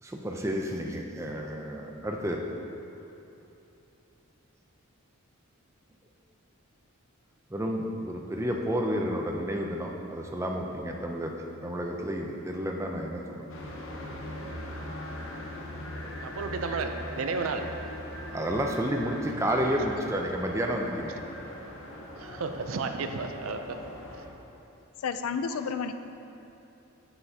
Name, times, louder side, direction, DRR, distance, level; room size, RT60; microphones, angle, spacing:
voice 1, 0.0-2.4 7.5-13.5 18.3-21.1, equal, 15° right, 1 dB, 0.5 m, -31 dB
sound 1, 13.5-24.3, left 1 dB, 65° left, 0.9 m, -40 dB
voice 2, 16.2-17.6 22.2-23.8, right 4 dB, 75° right, 6 dB, 0.5 m, -32 dB
voice 3, 25.0-25.9, left 6 dB, 85° left, 9 dB, 0.4 m, -31 dB
7.9 x 7.7 x 2.8 m, 2.8 s
head